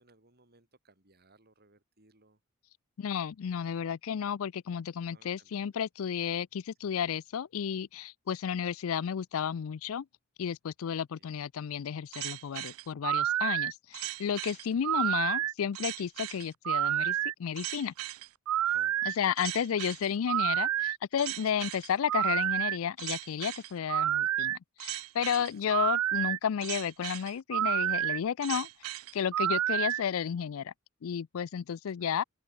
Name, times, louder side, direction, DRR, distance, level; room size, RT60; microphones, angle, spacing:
voice 1, 0.0-2.4 5.1-5.7 8.3-8.5 11.2-11.3 14.7-14.8 18.6-19.2 19.8-20.0 21.4-21.7 25.5-25.6 31.9-32.1, right 3 dB, 50° right, 6.2 m, -62 dB
voice 2, 3.0-10.1 10.4-17.9 19.2-28.7 29.1-30.7 31.0-32.2, left 8 dB, 70° left, 0.4 m, -32 dB
sound 1, 12.1-30.0, right 12 dB, 75° right, 0.3 m, -30 dB
open air
head